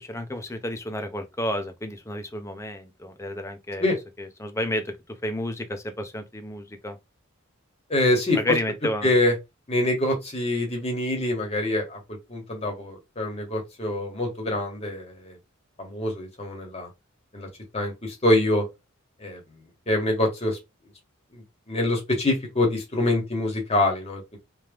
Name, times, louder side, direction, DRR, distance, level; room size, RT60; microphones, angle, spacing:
voice 1, 0.0-3.9 4.2-4.8 5.2-7.0 8.4-9.1, left 1 dB, 15° left, 0.7 m, -31 dB
voice 2, 7.9-8.6 9.0-9.3 9.7-12.0 12.3-15.4 15.8-16.9 17.3-17.5 17.7-18.7 19.2-19.4 19.9-20.6 21.3-24.4, left 1 dB, 30° left, 1.6 m, -25 dB
3.4 x 3.1 x 3.5 m
head